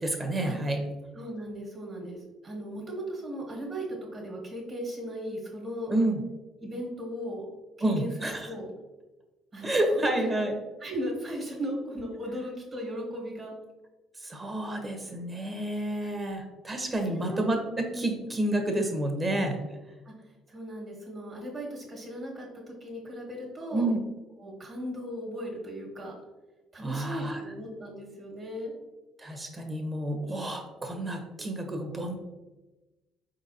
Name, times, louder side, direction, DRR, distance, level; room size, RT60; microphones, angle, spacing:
voice 1, 0.0-0.8 5.9-6.2 7.8-8.5 9.6-10.5 14.2-19.6 23.7-24.0 26.8-27.4 29.2-32.2, right 1 dB, 25° right, 4 dB, 0.8 m, -29 dB
voice 2, 1.1-5.9 6.6-7.5 7.8-8.7 9.5-10.4 10.8-13.5 16.0-16.1 17.1-17.4 17.9-18.2 20.0-20.1 20.5-23.9 24.4-26.1 26.7-28.7, equal, 45° right, -2 dB, 1.4 m, -37 dB
4.4 x 3.9 x 2.7 m, 1.1 s
cardioid pair, 95°, 0 cm